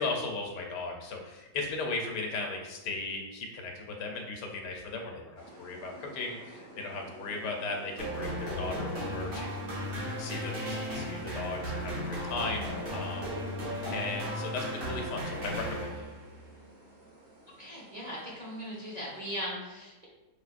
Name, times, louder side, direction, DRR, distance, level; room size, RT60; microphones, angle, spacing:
voice 1, 0.0-13.3 13.9-16.1, left 3 dB, 85° left, 1 dB, 1.4 m, -37 dB
sound 1, 5.4-19.3, right 1 dB, 50° right, 1.5 m, -52 dB
sound 2, 8.0-16.3, equal, 90° right, 2.0 m, -35 dB
voice 2, 17.6-20.1, equal, 30° right, -7 dB, 1.0 m, -39 dB
5.4 x 3.4 x 2.5 m, 1.1 s
omnidirectional pair, 1.8 m